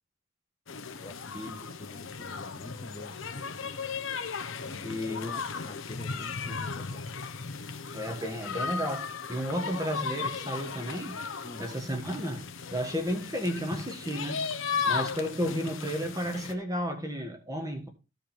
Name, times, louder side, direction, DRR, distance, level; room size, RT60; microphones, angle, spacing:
sound 1, 0.7-16.5, left 5 dB, 75° left, 0.9 m, -36 dB
voice 1, 1.0-1.5 1.8-3.7 4.6-7.0 11.4-11.7, left 2 dB, 25° left, 0.7 m, -46 dB
voice 2, 4.8-5.3 7.9-11.2 11.6-14.5 14.9-17.9, equal, 15° right, 1.6 m, -33 dB
14.5 x 5.1 x 4.4 m
head